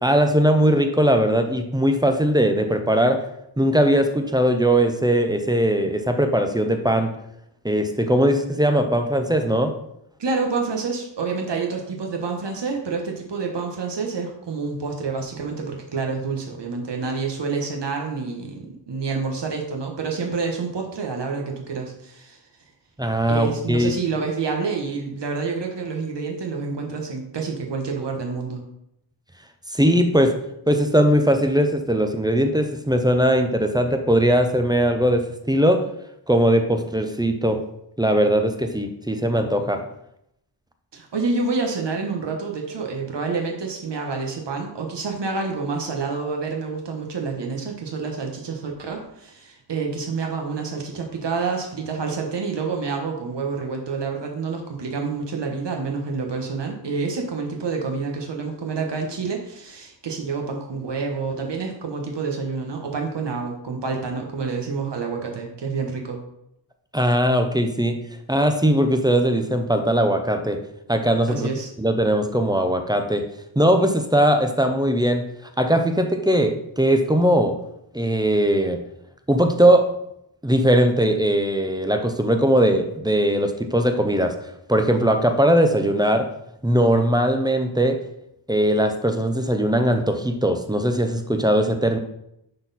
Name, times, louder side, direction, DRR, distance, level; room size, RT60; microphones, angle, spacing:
voice 1, 0.0-3.2 3.6-7.1 7.6-9.7 23.0-23.9 29.7-30.3 30.7-35.8 36.3-37.6 38.0-39.8 66.9-68.0 68.3-70.6 70.9-71.5 71.8-73.2 73.6-75.2 75.6-77.6 77.9-78.8 79.3-79.9 80.4-84.4 84.7-86.3 86.6-88.0 88.5-92.0, right 1 dB, 10° right, 6 dB, 0.5 m, -20 dB
voice 2, 10.2-22.4 23.3-28.6 40.9-66.2 71.3-71.7, right 4 dB, 65° right, 2 dB, 1.3 m, -28 dB
10.5 x 4.2 x 4.1 m, 0.79 s
wide cardioid pair, 175°, 44 cm